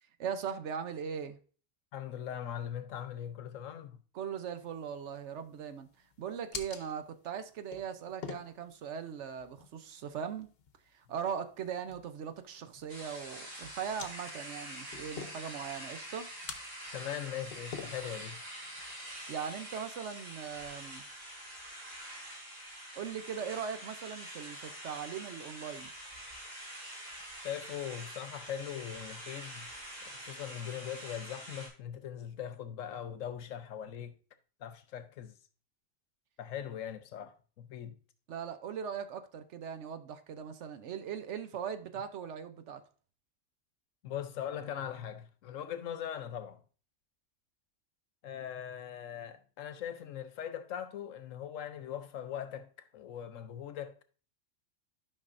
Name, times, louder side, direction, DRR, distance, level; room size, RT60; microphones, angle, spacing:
voice 1, 0.2-1.4 4.1-5.9 6.2-10.5 10.9-16.3 19.3-21.0 23.0-25.9 38.3-42.8, right 7 dB, 70° right, 1.0 m, -39 dB
voice 2, 1.9-4.0 16.9-18.4 27.4-29.7 30.2-34.2 34.6-35.4 36.4-38.0 44.0-46.6 48.2-54.0, left 9 dB, 85° left, 1.1 m, -40 dB
sound 1, 4.6-19.9, left 6 dB, 55° left, 0.9 m, -50 dB
sound 2, 12.9-31.7, equal, 50° right, 3.9 m, -46 dB
11.5 x 5.4 x 2.5 m
omnidirectional pair, 1.3 m